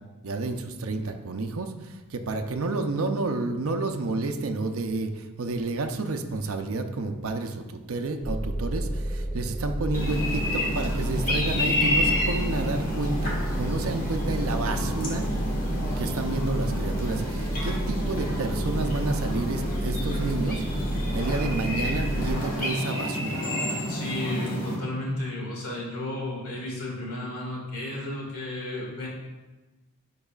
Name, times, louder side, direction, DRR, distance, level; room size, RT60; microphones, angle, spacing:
voice 1, 0.2-15.3 16.0-20.6 21.1-23.4, right 3 dB, 70° right, 5 dB, 0.6 m, -30 dB
sound 1, 8.2-22.3, right 1 dB, 10° left, 0.5 m, -31 dB
sound 2, 9.9-24.7, equal, 40° left, 1.5 m, -30 dB
voice 2, 23.9-29.1, left 1 dB, 85° left, -3 dB, 2.1 m, -33 dB
10.5 x 4.7 x 2.4 m, 1.1 s
head